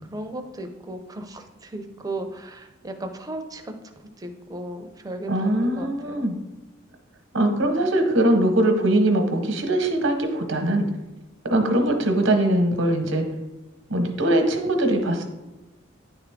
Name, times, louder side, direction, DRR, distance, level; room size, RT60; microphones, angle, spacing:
voice 1, 0.1-3.7 4.2-5.9 6.2-6.3, right 1 dB, 20° right, 5 dB, 0.5 m, -35 dB
voice 2, 5.3-6.3 7.3-10.9 11.4-13.2 13.9-15.2, right 1 dB, 75° right, 4 dB, 1.0 m, -21 dB
9.7 x 3.5 x 3.6 m, 1.1 s
head